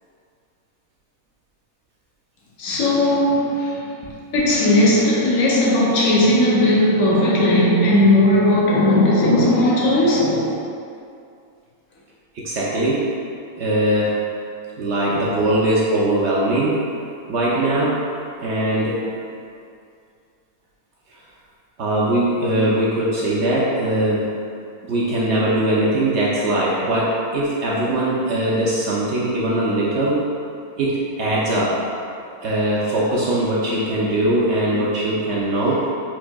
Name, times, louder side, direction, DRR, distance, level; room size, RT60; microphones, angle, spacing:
voice 1, 2.6-3.9 4.3-10.6 15.1-15.2, left 1 dB, 60° left, -5 dB, 1.0 m, -17 dB
voice 2, 12.3-13.0 13.6-14.2 14.8-16.8 17.3-18.0 18.4-19.0 21.8-24.3 24.8-30.2 30.8-31.8 32.4-35.9, right 1 dB, 65° right, -6 dB, 0.7 m, -21 dB
4.5 x 2.5 x 2.2 m, 2.4 s
omnidirectional pair, 1.6 m